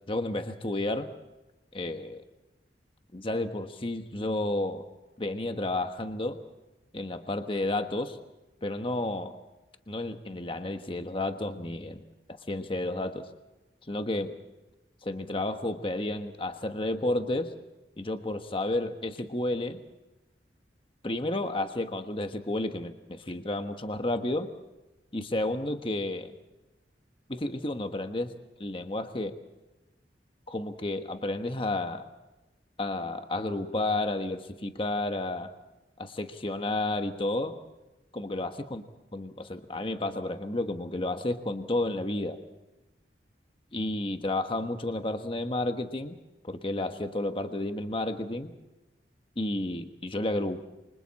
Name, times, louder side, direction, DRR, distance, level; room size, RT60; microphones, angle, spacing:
voice 1, 0.1-1.1 1.7-2.2 3.1-4.9 5.2-6.4 6.9-8.2 8.6-9.4 9.9-12.0 12.5-13.3 13.9-14.3 15.0-17.5 18.0-19.8 21.0-24.5 25.1-26.3 27.3-28.3 28.6-29.4 30.5-32.0 32.8-35.5 36.0-37.6 38.1-38.8 39.1-42.4 43.7-46.1 46.4-48.5 49.4-50.6, left 2 dB, 30° left, 7 dB, 1.3 m, -31 dB
28.5 x 25.0 x 4.2 m, 1.0 s
head